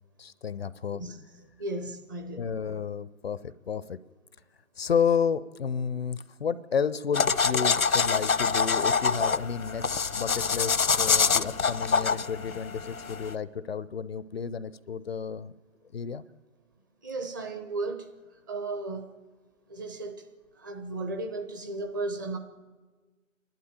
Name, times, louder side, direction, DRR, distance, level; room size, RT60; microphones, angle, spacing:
voice 1, 0.2-1.0 2.4-4.0 4.8-15.5 15.9-16.2, left 6 dB, 45° left, 17 dB, 0.6 m, -31 dB
voice 2, 1.6-2.5 17.0-18.1 18.5-19.1 19.7-20.2 20.6-22.4, right 2 dB, 15° right, 5 dB, 0.6 m, -34 dB
sound 1, 7.1-13.3, left 5 dB, 80° left, 1.0 m, -26 dB
28.5 x 12.0 x 9.0 m, 1.4 s
figure-of-eight pair, 140°, 42 cm